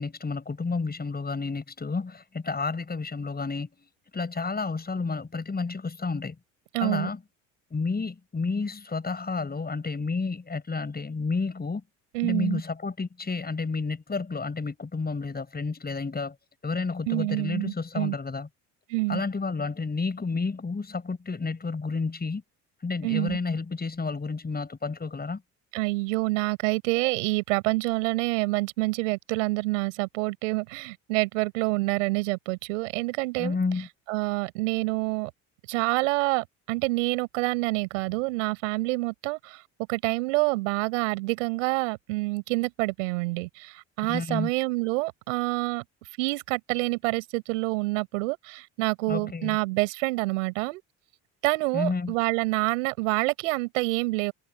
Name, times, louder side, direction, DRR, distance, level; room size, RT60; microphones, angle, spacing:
voice 1, 0.0-3.7 4.1-6.3 6.8-7.2 7.7-11.8 12.2-16.3 16.6-18.5 19.1-22.4 22.8-25.4 33.4-33.9 44.0-44.5 49.1-49.6 51.7-52.1, left 4 dB, 25° left, 6.6 m, -30 dB
voice 2, 6.7-7.1 12.1-12.6 17.1-18.1 18.9-19.2 23.0-23.4 25.7-33.6 34.1-35.3 35.7-39.6 39.9-45.8 46.2-50.8 51.4-54.3, right 24 dB, 85° right, 7.1 m, -27 dB
hypercardioid pair, 70°, 36 cm